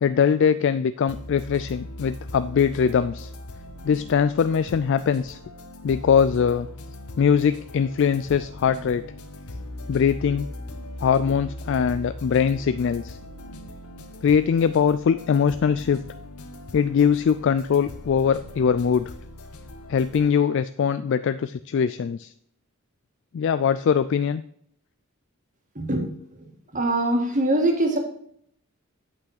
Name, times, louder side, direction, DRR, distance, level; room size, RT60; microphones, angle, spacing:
voice 1, 0.0-3.3 3.8-5.4 5.8-6.7 7.2-9.0 9.9-10.5 11.0-13.2 14.2-16.0 16.7-19.1 19.9-22.3 23.3-24.4, left 7 dB, 55° left, 13 dB, 0.3 m, -22 dB
sound 1, 1.1-20.3, left 1 dB, 90° left, 1.1 m, -40 dB
voice 2, 26.7-28.0, right 1 dB, 35° right, 3 dB, 1.8 m, -22 dB
8.1 x 5.9 x 6.5 m, 0.66 s
head